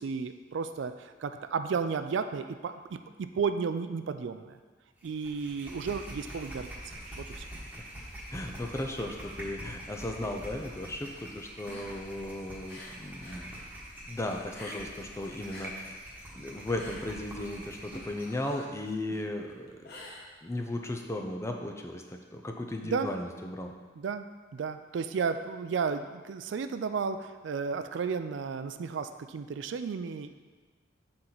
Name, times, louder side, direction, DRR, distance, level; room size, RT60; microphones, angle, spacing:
voice 1, 0.0-4.6 5.0-6.7 7.2-7.4 22.8-23.1 24.0-24.3 24.5-30.3, right 5 dB, 65° right, 9 dB, 0.4 m, -33 dB
sound 1, 5.0-18.4, right 1 dB, 10° right, 1.4 m, -45 dB
voice 2, 8.3-13.5 14.1-15.9 16.3-20.0 20.4-23.7, left 1 dB, 15° left, 3 dB, 0.5 m, -36 dB
sound 2, 11.5-13.5 13.8-15.1 15.4-20.8, left 1 dB, 55° left, 1.0 m, -49 dB
7.8 x 4.3 x 3.9 m, 1.4 s
head